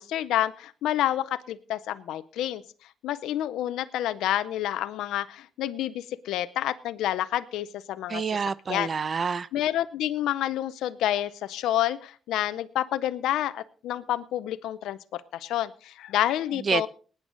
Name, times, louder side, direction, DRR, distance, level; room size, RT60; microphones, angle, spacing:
voice 1, 0.0-2.6 3.0-8.2 8.7-8.9 9.5-16.9, left 12 dB, 85° left, 14 dB, 0.6 m, -29 dB
voice 2, 8.1-9.5 16.7-16.9, right 5 dB, 50° right, 19 dB, 0.7 m, -27 dB
19.5 x 9.5 x 3.9 m, 0.40 s
cardioid pair, 65°, 0 cm